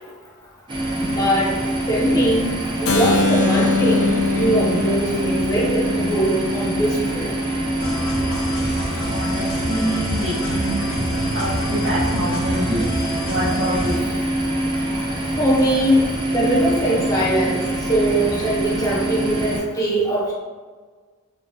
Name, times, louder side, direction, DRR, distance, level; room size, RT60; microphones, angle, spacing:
sound 1, 0.7-19.6, right 1 dB, 20° right, 0.3 m, -25 dB
voice 1, 1.0-1.6 1.9-2.5 2.8-7.3 15.4-17.6 17.9-20.3, right 1 dB, 15° left, -5 dB, 0.6 m, -21 dB
Keyboard (musical), 2.9-8.7, left 4 dB, 85° left, 0.4 m, -24 dB
sound 2, 7.8-14.0, equal, 60° left, 0.8 m, -28 dB
voice 2, 9.1-10.9 11.3-12.9 13.2-14.0, right 1 dB, 55° right, -9 dB, 0.7 m, -26 dB
3.1 x 2.6 x 2.2 m, 1.4 s
head